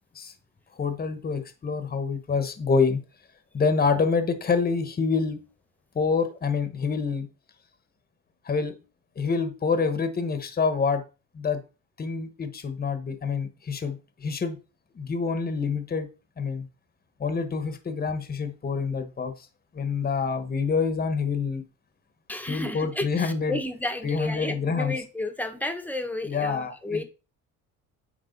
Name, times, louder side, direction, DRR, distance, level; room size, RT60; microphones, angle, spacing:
voice 1, 0.7-3.0 3.5-5.4 5.9-7.3 8.4-8.7 9.2-11.0 11.3-11.6 12.0-14.6 14.9-16.1 16.4-16.7 17.2-19.5 19.7-21.6 22.5-23.6 24.0-24.9 26.2-27.0, left 5 dB, 25° left, 9 dB, 1.3 m, -27 dB
voice 2, 22.3-27.0, left 2 dB, 5° left, 7 dB, 1.3 m, -32 dB
9.4 x 3.5 x 5.3 m, 0.31 s
cardioid pair, 110°, 33 cm